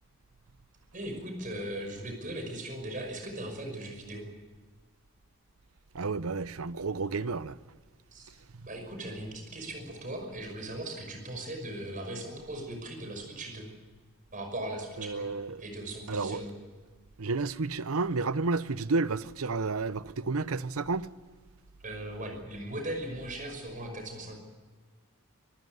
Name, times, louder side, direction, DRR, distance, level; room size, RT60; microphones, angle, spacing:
voice 1, 0.9-4.3 8.1-8.3 8.6-13.7 14.3-15.3 15.6-16.5 21.8-24.4, right 1 dB, 40° right, 5.7 m, -38 dB
voice 2, 5.9-7.5 15.0-15.6 16.1-16.4 17.2-21.1, right 3 dB, 80° right, 0.8 m, -31 dB
26.0 x 15.0 x 9.5 m
head